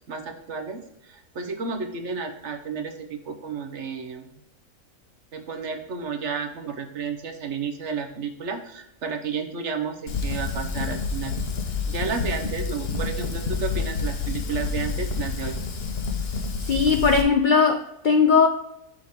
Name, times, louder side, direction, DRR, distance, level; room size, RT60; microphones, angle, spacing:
voice 1, 0.1-4.3 5.3-11.3 11.9-15.6, right 5 dB, 55° right, 1.1 m, -32 dB
Fire, 10.1-17.2, left 4 dB, 50° left, 1.0 m, -28 dB
voice 2, 16.7-18.5, left 5 dB, 70° left, 0.4 m, -19 dB
6.4 x 6.0 x 3.5 m
omnidirectional pair, 1.5 m